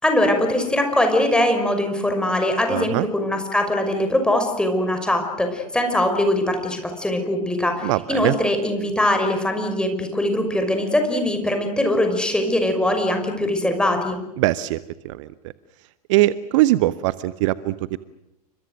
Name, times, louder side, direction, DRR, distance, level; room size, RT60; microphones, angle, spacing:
voice 1, 0.0-14.2, left 1 dB, 5° left, 5 dB, 5.8 m, -22 dB
voice 2, 2.7-3.1 7.8-8.3 14.4-14.8 15.0-15.5 16.1-18.0, right 16 dB, 50° right, 17 dB, 0.9 m, -21 dB
30.0 x 25.0 x 6.5 m, 0.89 s
figure-of-eight pair, 85°, 20 cm